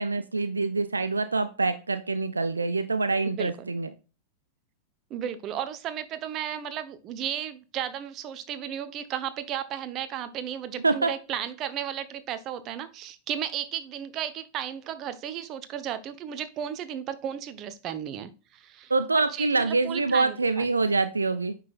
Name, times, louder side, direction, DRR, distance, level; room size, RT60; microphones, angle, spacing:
voice 1, 0.0-3.9 10.8-11.1 18.9-21.5, right 3 dB, 80° right, 12 dB, 0.4 m, -25 dB
voice 2, 3.2-3.7 5.1-20.7, right 9 dB, 35° right, 12 dB, 0.9 m, -34 dB
9.2 x 5.7 x 2.4 m, 0.33 s
figure-of-eight pair, 90°, 0 cm